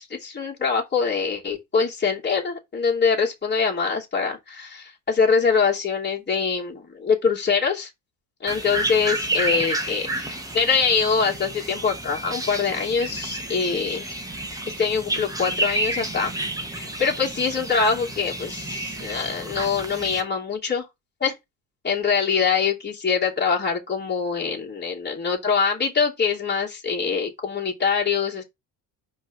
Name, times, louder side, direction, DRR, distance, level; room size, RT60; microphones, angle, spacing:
voice 1, 0.0-7.9 8.4-14.2 14.6-16.3 16.7-20.8 21.2-21.3 21.8-28.4, left 5 dB, 25° left, 3.1 m, -24 dB
sound 1, 8.5-20.2, right 1 dB, 10° right, 1.6 m, -30 dB
5.1 x 3.7 x 5.6 m
supercardioid pair, 75°, 44 cm